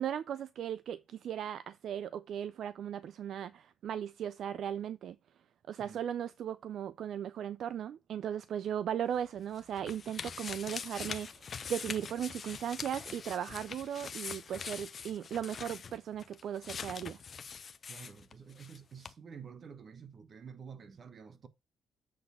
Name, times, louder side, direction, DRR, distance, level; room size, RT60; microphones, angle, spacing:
voice 1, 0.0-5.2 5.7-17.2, right 9 dB, 70° right, 0.4 m, -37 dB
sound 1, 9.1-18.8 19.0-19.1, left 6 dB, 45° left, 0.8 m, -43 dB
voice 2, 17.8-21.5, right 6 dB, 50° right, 1.1 m, -50 dB
7.7 x 4.2 x 5.7 m
cardioid pair, 90°, 0 cm